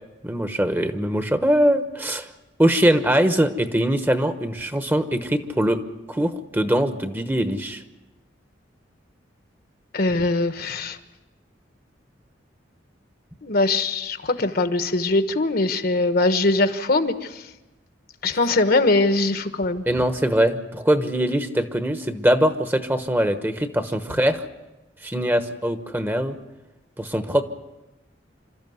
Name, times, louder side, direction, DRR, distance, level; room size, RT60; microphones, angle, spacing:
voice 1, 0.2-2.3 2.6-5.8 6.1-7.8 19.9-24.5 25.0-26.4 27.0-27.4, equal, 10° right, 9 dB, 1.1 m, -22 dB
voice 2, 9.9-11.0 13.4-17.4 18.2-19.8, left 2 dB, 55° left, 10 dB, 1.2 m, -21 dB
27.0 x 13.5 x 9.4 m, 1.0 s
head